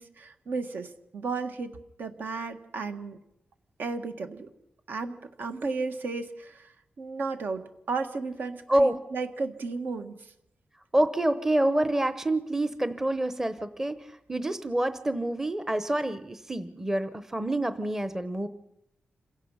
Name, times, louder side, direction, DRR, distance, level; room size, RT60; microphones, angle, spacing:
voice 1, 0.0-3.2 3.8-4.5 4.9-10.3, right 4 dB, 70° right, 7 dB, 1.6 m, -34 dB
voice 2, 10.9-14.0 14.3-18.5, right 1 dB, 15° right, 11 dB, 0.9 m, -27 dB
27.0 x 17.0 x 5.7 m, 0.80 s
wide cardioid pair, 135°, 3 cm